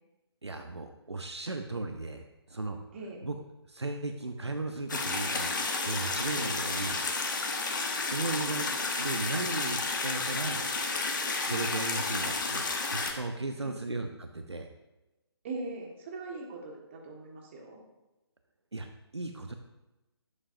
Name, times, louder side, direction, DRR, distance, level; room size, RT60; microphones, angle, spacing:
voice 1, 0.4-2.8 3.2-3.4 3.7-5.5 5.8-7.0 8.0-8.7 9.0-10.7 11.4-14.7 18.7-18.9 19.1-19.5, right 2 dB, 75° right, 5 dB, 0.9 m, -36 dB
sound 1, 4.9-13.1, left 3 dB, 45° left, 1.2 m, -31 dB
voice 2, 15.4-17.8, right 3 dB, 25° right, -1 dB, 1.6 m, -40 dB
11.5 x 8.6 x 2.6 m, 1.0 s
figure-of-eight pair, 145°, 14 cm